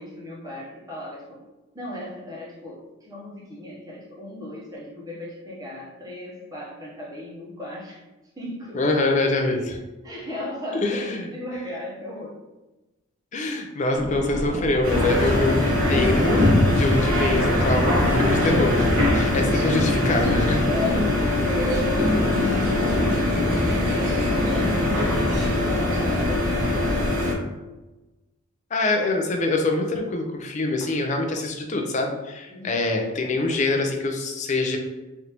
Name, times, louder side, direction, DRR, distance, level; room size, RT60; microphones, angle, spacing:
voice 1, 0.0-1.4 1.7-8.0 8.4-9.0 9.5-9.6 10.0-12.4 19.5-19.8 20.6-27.4 32.5-32.8, left 1 dB, 15° right, -6 dB, 0.8 m, -36 dB
voice 2, 8.7-9.8 10.8-11.3 13.3-20.7 28.7-34.8, left 2 dB, 35° left, 3 dB, 0.4 m, -25 dB
sound 1, 13.9-27.1, equal, 80° left, 1.1 m, -31 dB
sound 2, 14.8-27.3, left 1 dB, 90° right, 1.2 m, -22 dB
3.2 x 2.5 x 2.9 m, 1.1 s
head